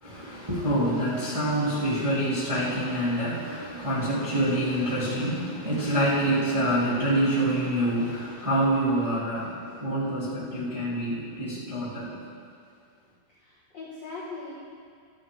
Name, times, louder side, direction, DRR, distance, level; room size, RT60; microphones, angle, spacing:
voice 1, 0.0-12.2, right 1 dB, 20° right, -11 dB, 0.9 m, -26 dB
voice 2, 13.3-14.5, left 3 dB, 85° left, -8 dB, 1.4 m, -40 dB
15.0 x 10.0 x 3.6 m, 2.2 s
omnidirectional pair, 5.6 m